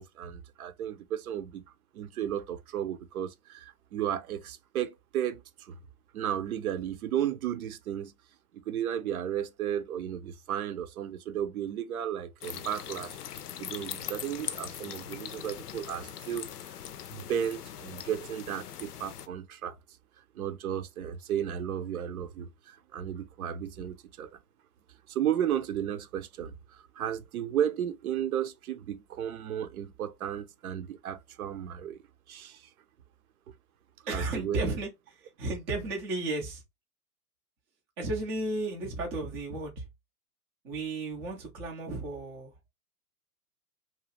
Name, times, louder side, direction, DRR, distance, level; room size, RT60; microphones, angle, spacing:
voice 1, 0.0-1.6 1.9-5.8 6.1-8.1 8.7-13.2 13.6-16.8 17.1-19.8 20.3-24.4 25.1-32.0 32.3-32.7 34.1-34.6, right 10 dB, 65° right, 0.7 m, -34 dB
sound 1, 12.4-19.3, left 10 dB, 80° left, 0.5 m, -41 dB
voice 2, 34.1-36.6 38.0-39.9 40.6-42.5, right 2 dB, 10° right, 0.3 m, -34 dB
2.8 x 2.3 x 3.0 m
hypercardioid pair, 110°, 46 cm